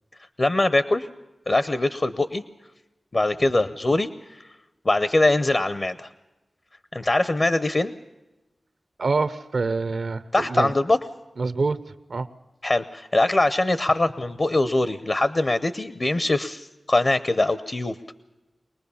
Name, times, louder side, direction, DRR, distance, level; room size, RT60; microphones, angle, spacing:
voice 1, 0.4-1.1 1.5-2.4 3.1-4.1 4.8-6.1 6.9-7.9 10.3-11.0 12.6-18.0, left 2 dB, 45° left, 13 dB, 0.7 m, -22 dB
voice 2, 9.0-10.7 11.4-11.8 12.1-12.3, right 3 dB, 80° right, 13 dB, 0.8 m, -25 dB
23.5 x 19.5 x 7.1 m, 1.0 s
wide cardioid pair, 70°, 0 cm